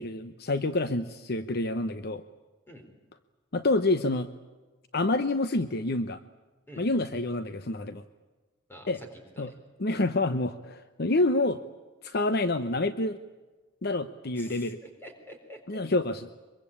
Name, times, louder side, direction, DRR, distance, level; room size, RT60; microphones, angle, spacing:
voice 1, 0.0-2.2 3.5-4.3 4.9-6.2 6.8-8.0 8.9-9.0 9.4-9.5 9.8-11.6 12.0-13.2 13.8-14.8 15.7-16.3, left 2 dB, 55° left, 11 dB, 0.9 m, -27 dB
voice 2, 8.7-9.6 14.3-15.8, equal, 10° left, 4 dB, 4.1 m, -48 dB
24.0 x 23.0 x 8.6 m, 1.2 s
head